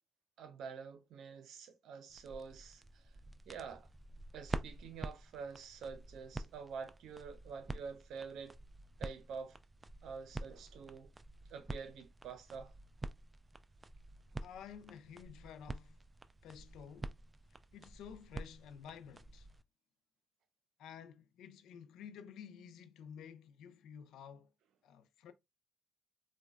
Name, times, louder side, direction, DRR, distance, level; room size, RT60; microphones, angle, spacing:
voice 1, 0.4-3.1 3.5-3.9 4.3-8.6 9.0-9.6 10.0-11.1 11.5-12.7, right 5 dB, 80° right, 0.6 m, -47 dB
sound 1, 2.1-19.6, right 2 dB, 20° right, 0.3 m, -48 dB
voice 2, 14.4-16.0 16.4-17.2 17.7-19.5 20.8-24.5 24.8-25.3, left 8 dB, 85° left, 0.4 m, -52 dB
3.8 x 2.2 x 2.3 m
cardioid pair, 90°, 0 cm